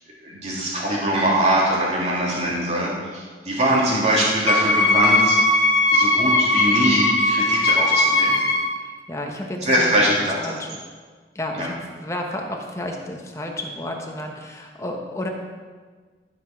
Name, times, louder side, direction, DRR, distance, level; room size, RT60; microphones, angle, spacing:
voice 1, 0.2-5.4 5.9-8.4 9.6-10.5 11.6-11.7, right 1 dB, 40° right, -5 dB, 3.0 m, -22 dB
Wind instrument woodwind instrument, 4.5-8.7, left 2 dB, 85° left, 1.0 m, -19 dB
voice 2, 8.8-10.1 10.4-10.8 11.3-11.7 12.0-15.3, left 1 dB, 15° left, 1 dB, 1.1 m, -31 dB
12.0 x 6.0 x 6.1 m, 1.5 s
head